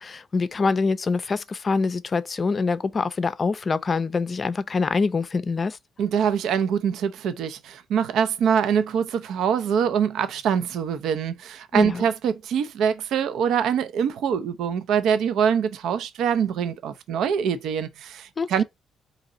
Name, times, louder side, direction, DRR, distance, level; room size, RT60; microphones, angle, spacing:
voice 1, 0.0-5.8 11.7-12.0 18.4-18.6, left 4 dB, 35° left, 0.4 m, -25 dB
voice 2, 6.0-18.6, right 7 dB, 80° right, 0.5 m, -24 dB
4.0 x 2.8 x 3.8 m
cardioid pair, 90°, 0 cm